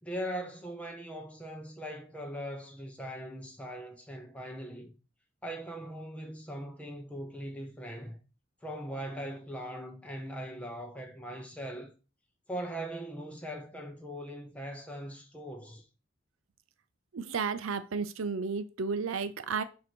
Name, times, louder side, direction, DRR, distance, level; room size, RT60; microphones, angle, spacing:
voice 1, 0.0-4.9 5.4-8.2 8.6-11.9 12.5-15.8, equal, 5° left, 1.0 m, -40 dB
voice 2, 17.1-19.6, right 5 dB, 85° right, 0.6 m, -32 dB
6.6 x 2.9 x 5.3 m
head